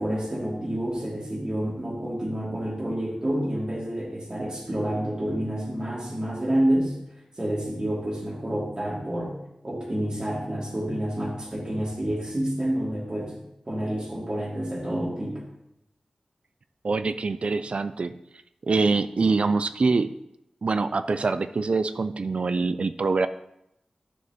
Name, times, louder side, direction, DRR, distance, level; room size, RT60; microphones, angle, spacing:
voice 1, 0.0-7.0 7.4-9.4 9.6-15.4, right 1 dB, 40° right, -3 dB, 2.5 m, -28 dB
voice 2, 16.8-18.1 18.6-20.1 20.6-23.3, right 4 dB, 65° right, 12 dB, 0.4 m, -24 dB
11.0 x 6.3 x 2.9 m, 0.82 s
wide cardioid pair, 65°, 2 cm